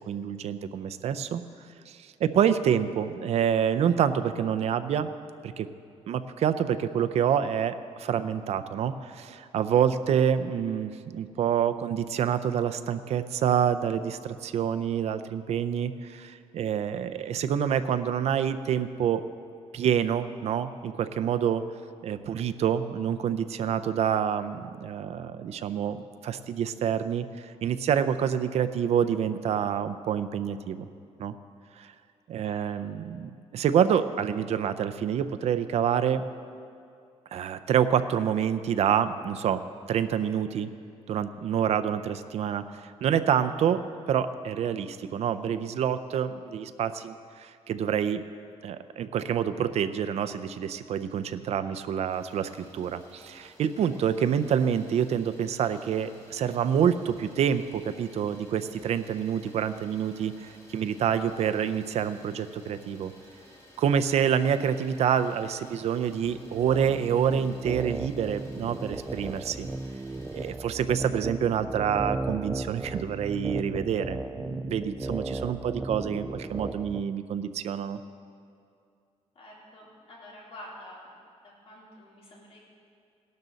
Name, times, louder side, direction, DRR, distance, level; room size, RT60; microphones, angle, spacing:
voice 1, 0.1-1.4 1.9-5.1 5.4-5.7 6.1-19.2 19.7-21.6 22.0-30.9 31.2-31.3 31.8-31.9 32.3-36.2 37.3-39.6 39.9-40.7 41.1-43.8 44.1-48.2 48.6-63.1 63.8-69.7 70.3-78.0, right 8 dB, 65° right, 11 dB, 0.5 m, -27 dB
Idling, 52.1-70.5, left 1 dB, 25° left, 2.4 m, -55 dB
sound 1, 66.2-77.0, right 2 dB, 10° right, 0.3 m, -35 dB
voice 2, 79.4-81.0 81.4-82.6, left 1 dB, 55° left, -4 dB, 3.6 m, -48 dB
17.0 x 12.0 x 4.0 m, 2.4 s
wide cardioid pair, 165°, 12 cm